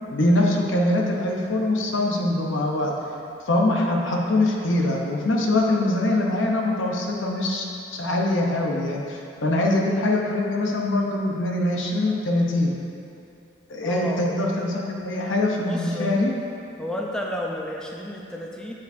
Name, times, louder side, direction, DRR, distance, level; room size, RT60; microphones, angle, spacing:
voice 1, 0.1-2.9 3.4-7.6 7.9-12.7 13.7-16.3, left 1 dB, 80° left, -1 dB, 0.8 m, -23 dB
voice 2, 13.8-14.2 15.5-16.1 16.8-18.7, left 1 dB, 5° left, -2 dB, 0.5 m, -31 dB
9.1 x 5.3 x 2.6 m, 2.7 s
head